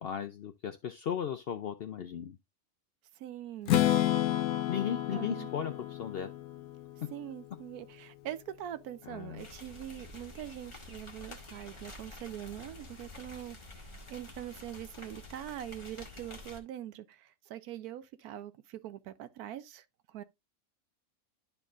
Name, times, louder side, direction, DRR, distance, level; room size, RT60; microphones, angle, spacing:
voice 1, 0.0-2.4 4.7-6.3 9.0-9.5, left 8 dB, 70° left, 0.6 m, -36 dB
voice 2, 3.2-3.8 5.1-5.5 7.1-20.2, right 12 dB, 90° right, 1.2 m, -43 dB
Strum, 3.7-7.6, left 12 dB, 85° left, 1.1 m, -31 dB
sound 1, 9.4-16.6, left 2 dB, 20° left, 1.1 m, -49 dB
11.0 x 4.5 x 2.4 m
omnidirectional pair, 1.5 m